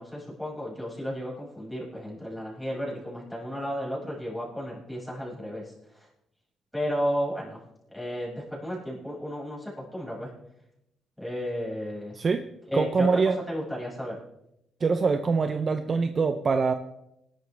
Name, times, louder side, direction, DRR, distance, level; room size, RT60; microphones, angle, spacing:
voice 1, 0.0-6.1 6.7-7.6 7.9-10.3 11.2-12.2 12.7-13.2 13.5-14.2, equal, ahead, -5 dB, 6.3 m, -33 dB
voice 2, 12.2-12.5 12.7-13.4 14.8-16.7, right 4 dB, 35° right, 9 dB, 0.6 m, -24 dB
20.0 x 11.5 x 3.4 m, 0.83 s
cardioid pair, 120°, 0 cm